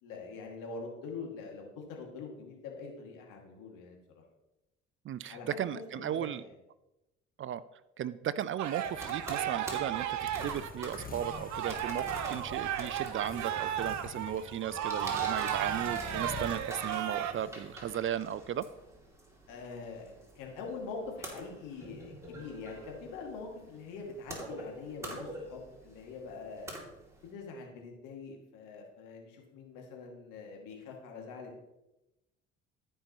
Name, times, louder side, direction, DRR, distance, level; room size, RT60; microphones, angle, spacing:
voice 1, 0.0-4.2 5.3-6.5 19.5-26.9 27.2-31.6, left 4 dB, 65° left, 0 dB, 2.3 m, -44 dB
voice 2, 5.1-6.4 7.4-7.6 8.0-18.6, right 10 dB, 40° right, 16 dB, 0.4 m, -36 dB
sound 1, 8.6-17.3, right 10 dB, 55° right, 0.9 m, -34 dB
sound 2, 8.7-18.5, left 4 dB, 25° left, 1.2 m, -48 dB
sound 3, 9.0-27.3, right 1 dB, 10° right, 2.7 m, -47 dB
14.5 x 5.5 x 3.0 m, 0.94 s
hypercardioid pair, 55°, 34 cm